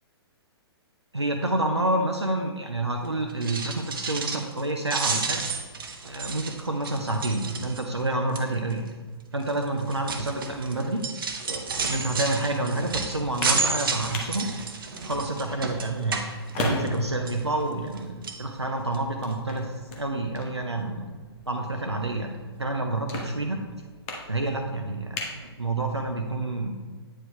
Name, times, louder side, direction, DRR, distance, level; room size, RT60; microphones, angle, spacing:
voice 1, 1.1-5.4 6.0-8.9 9.3-11.0 11.4-14.4 15.0-16.2 16.6-21.1 21.5-23.6 24.3-26.7, right 2 dB, 90° right, 3 dB, 0.6 m, -28 dB
sound 1, 3.3-4.6 4.9-8.0 8.3-8.7 9.4-17.0 17.3-18.0 18.2-18.4 18.9-19.0 19.3-19.4, right 4 dB, 55° right, 0.8 m, -31 dB
sound 2, 13.1-26.2, left 2 dB, 30° left, 1.0 m, -39 dB
8.8 x 4.8 x 3.2 m, 1.4 s
figure-of-eight pair, 120°, 14 cm